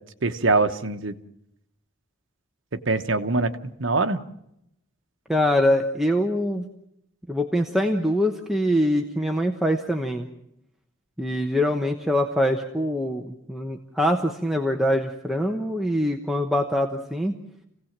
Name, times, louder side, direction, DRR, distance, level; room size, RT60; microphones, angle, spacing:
voice 1, 0.2-1.1 2.7-3.5 3.8-4.2, right 3 dB, 60° right, 8 dB, 1.2 m, -23 dB
voice 2, 5.3-6.6 7.3-10.3 11.2-17.4, equal, ahead, 2 dB, 1.0 m, -24 dB
27.0 x 17.0 x 7.4 m, 0.81 s
head